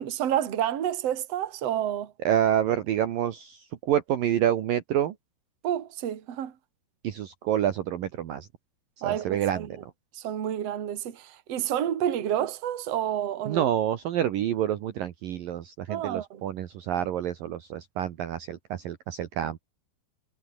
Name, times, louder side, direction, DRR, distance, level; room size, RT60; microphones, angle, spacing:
voice 1, 0.0-2.1 5.6-6.5 9.0-9.7 10.2-13.7 15.9-16.4, right 10 dB, 45° right, 2.6 m, -29 dB
voice 2, 2.2-5.2 7.0-8.5 9.0-9.8 13.4-19.6, right 10 dB, 65° right, 2.7 m, -28 dB
omnidirectional pair, 5.1 m